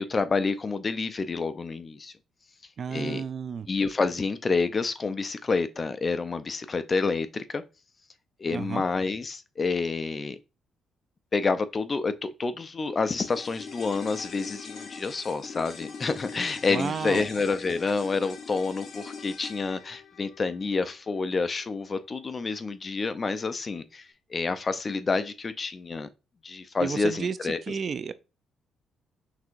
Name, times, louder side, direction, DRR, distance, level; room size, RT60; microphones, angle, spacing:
voice 1, 0.0-2.1 2.9-3.2 3.7-7.6 8.4-10.4 11.3-26.1 26.4-27.8, left 4 dB, 35° left, 0.5 m, -28 dB
voice 2, 2.8-3.7 8.5-8.8 16.7-17.3 26.8-27.4 27.7-28.1, right 6 dB, 50° right, 0.4 m, -31 dB
sound 1, 13.2-21.7 22.0-22.1, left 5 dB, 55° left, 1.0 m, -43 dB
5.9 x 2.8 x 2.5 m
cardioid pair, 90°, 0 cm